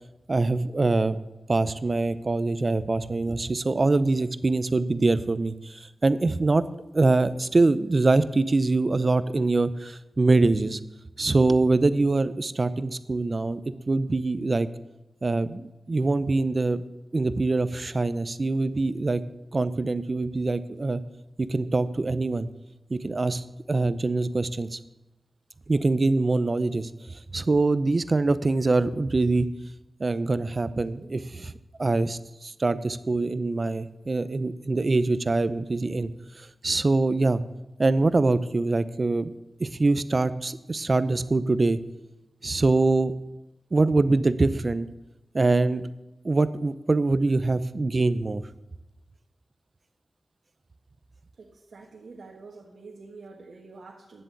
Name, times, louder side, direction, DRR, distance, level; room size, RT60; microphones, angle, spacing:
voice 1, 0.3-1.2 1.5-6.6 6.9-10.8 11.2-13.6 13.9-14.7 15.2-16.8 17.1-19.2 19.5-21.0 21.4-22.5 22.9-24.8 25.7-29.5 30.0-31.5 31.8-36.1 36.4-37.4 37.8-39.3 39.6-41.8 42.4-43.1 43.7-44.9 45.3-45.8 46.2-48.4, right 3 dB, 40° right, 14 dB, 0.6 m, -24 dB
voice 2, 51.4-54.2, right 3 dB, 80° right, -2 dB, 1.4 m, -46 dB
10.0 x 7.6 x 8.2 m, 0.98 s
cardioid pair, 65°, 0 cm